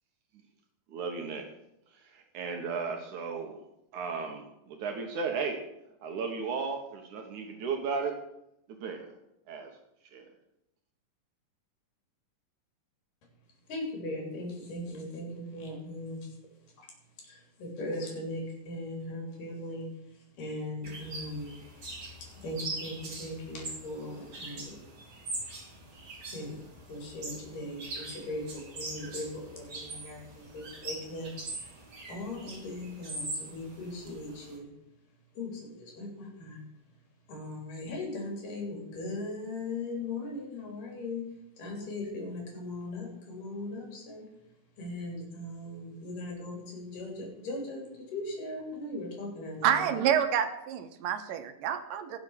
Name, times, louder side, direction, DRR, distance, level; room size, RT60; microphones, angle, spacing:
voice 1, 0.9-1.5 1.9-3.6 3.9-5.6 6.0-8.2 8.7-9.1 9.5-9.7 10.1-10.3, right 5 dB, 70° right, 4 dB, 2.8 m, -35 dB
voice 2, 13.7-16.3 16.8-16.9 17.3-19.9 20.4-21.5 22.2-24.8 26.3-26.6 26.9-31.3 31.6-31.7 32.1-34.7 35.4-36.6 37.3-41.2 41.6-44.3 44.8-49.9, left 2 dB, 80° left, 0 dB, 4.9 m, -39 dB
sound 1, 20.8-34.6, right 2 dB, 40° right, 3.9 m, -42 dB
voice 3, 49.6-52.2, right 9 dB, 85° right, 9 dB, 2.7 m, -28 dB
17.5 x 7.4 x 6.5 m, 0.81 s
omnidirectional pair, 3.8 m